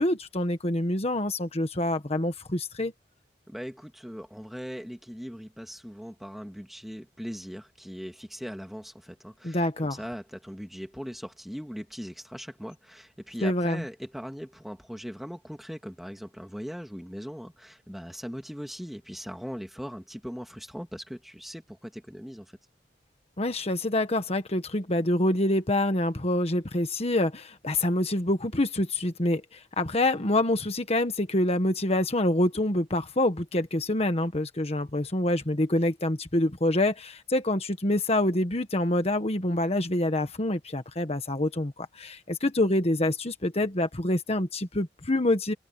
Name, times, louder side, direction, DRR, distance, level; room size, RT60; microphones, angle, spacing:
voice 1, 0.0-2.9 9.4-10.0 13.4-13.8 23.4-45.5, left 1 dB, 35° left, 1.5 m, -26 dB
voice 2, 3.5-22.6, equal, ahead, 2.1 m, -40 dB
head